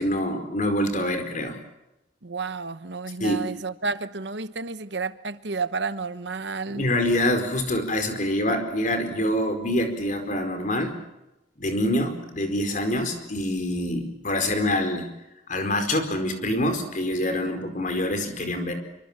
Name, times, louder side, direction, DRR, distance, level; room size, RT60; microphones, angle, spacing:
voice 1, 0.0-1.6 3.2-3.4 6.7-11.0 11.6-15.1 15.5-18.7, left 1 dB, 45° left, 4.6 m, -25 dB
voice 2, 2.2-6.8 17.3-17.4, right 4 dB, 65° right, 1.1 m, -31 dB
25.5 x 25.0 x 7.4 m
head